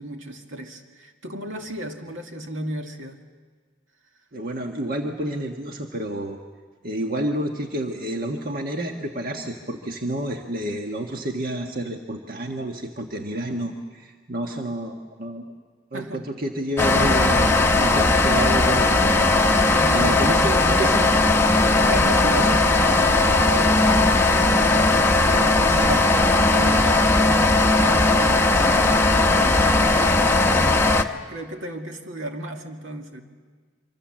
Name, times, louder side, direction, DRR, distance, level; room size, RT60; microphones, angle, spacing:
voice 1, 0.0-3.2 15.9-16.3 18.4-18.6 19.7-20.2 21.7-33.2, right 1 dB, 75° right, 3 dB, 2.2 m, -34 dB
voice 2, 4.3-6.4 6.8-15.5 15.9-19.3 19.9-21.3 22.0-22.5, right 1 dB, 45° right, 3 dB, 1.5 m, -29 dB
sound 1, 16.8-31.0, left 2 dB, 10° left, 0.9 m, -18 dB
25.0 x 25.0 x 7.5 m, 1.5 s
head